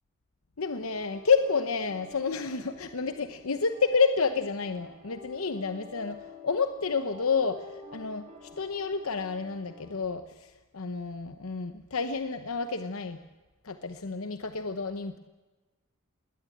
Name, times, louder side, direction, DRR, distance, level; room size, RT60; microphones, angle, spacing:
voice 1, 0.6-13.2 13.6-15.2, left 5 dB, 90° left, 9 dB, 0.9 m, -29 dB
sound 1, 0.8-10.2, left 3 dB, 30° right, 4.4 m, -49 dB
20.5 x 18.5 x 8.7 m, 1.2 s
head